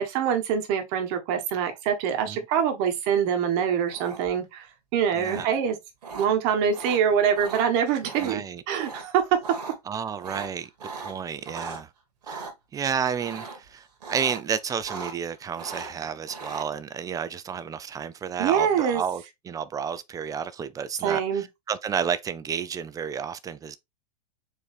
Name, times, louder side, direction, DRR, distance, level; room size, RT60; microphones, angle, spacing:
voice 1, 0.0-4.7 4.9-5.8 6.1-9.2 18.4-19.0 21.0-21.5, right 8 dB, 50° right, 1.4 m, -24 dB
sound 1, 3.9-4.4 5.2-5.4 6.0-6.3 6.7-7.0 7.3-7.6 8.0-8.3 8.7-9.0 9.3-9.7 10.2-11.8 12.2-12.5 13.2-13.7 14.0-14.4 14.7-15.3 15.6-16.6, right 4 dB, 80° right, 1.8 m, -38 dB
voice 2, 5.2-5.5 8.2-8.6 9.9-11.9 12.3-12.5 12.7-23.8, right 7 dB, 15° right, 0.4 m, -31 dB
4.7 x 3.1 x 3.3 m
hypercardioid pair, 110°, 21 cm